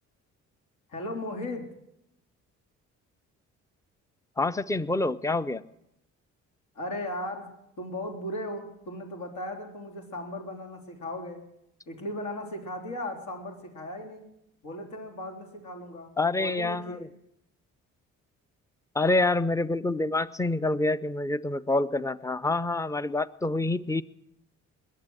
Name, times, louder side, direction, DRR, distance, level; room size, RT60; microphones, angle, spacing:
voice 1, 0.9-1.7 6.7-11.4 11.9-14.3 14.6-17.1, left 1 dB, 75° left, 2 dB, 3.8 m, -37 dB
voice 2, 4.4-5.6 16.2-17.1 18.9-24.0, left 2 dB, 10° left, 16 dB, 0.6 m, -27 dB
21.0 x 8.4 x 7.8 m, 0.81 s
cardioid pair, 90°, 30 cm